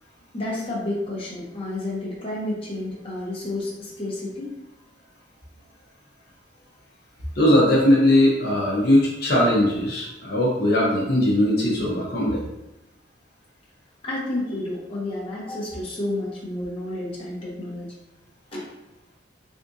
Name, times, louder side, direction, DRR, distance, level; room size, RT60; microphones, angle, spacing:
voice 1, 0.3-4.5 14.0-17.9 18.5-18.6, left 1 dB, 30° left, -6 dB, 0.9 m, -30 dB
voice 2, 7.4-12.4, left 1 dB, 60° left, -5 dB, 0.8 m, -19 dB
3.5 x 2.5 x 2.6 m, 0.90 s
head